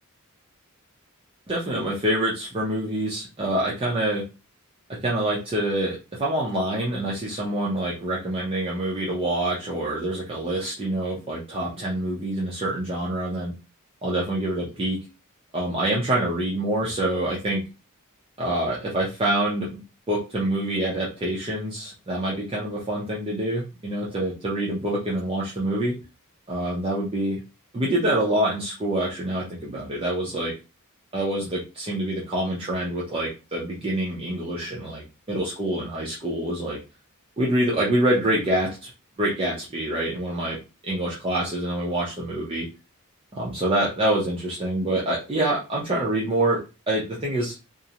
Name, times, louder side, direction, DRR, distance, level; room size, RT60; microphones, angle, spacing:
voice 1, 1.5-4.2 5.0-13.5 14.0-15.0 15.5-17.6 18.4-19.8 20.1-25.9 26.5-27.4 27.7-30.5 31.1-36.8 37.4-38.9 39.2-40.6 40.8-42.7 43.3-46.6 46.9-47.5, right 1 dB, 25° right, -5 dB, 0.5 m, -26 dB
2.5 x 2.0 x 2.7 m, 0.30 s
head